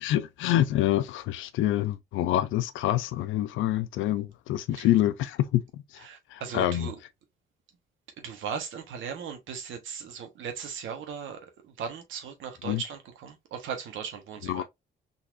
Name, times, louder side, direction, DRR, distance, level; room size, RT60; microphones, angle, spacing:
voice 1, 0.0-6.0 6.3-6.9 12.6-12.8 14.5-14.6, left 13 dB, 85° left, 0.5 m, -26 dB
voice 2, 6.0-7.0 8.2-14.6, right 7 dB, 80° right, 1.2 m, -38 dB
3.9 x 2.9 x 2.5 m
cardioid pair, 90°, 20 cm